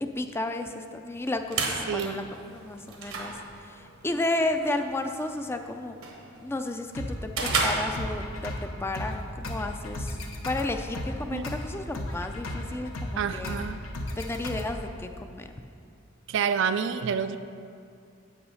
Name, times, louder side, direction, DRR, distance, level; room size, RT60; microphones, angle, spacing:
voice 1, 0.0-6.0 6.4-10.2 10.4-13.6 14.2-15.5, left 2 dB, 10° left, 6 dB, 0.4 m, -32 dB
sound 1, 1.1-8.6, right 3 dB, 80° right, 1.2 m, -34 dB
voice 2, 1.9-2.3 11.3-11.5 13.2-13.8 16.3-17.4, right 7 dB, 60° right, 11 dB, 0.3 m, -28 dB
sound 2, 6.9-14.9, left 1 dB, 90° left, 0.9 m, -35 dB
8.4 x 5.7 x 5.6 m, 2.4 s
head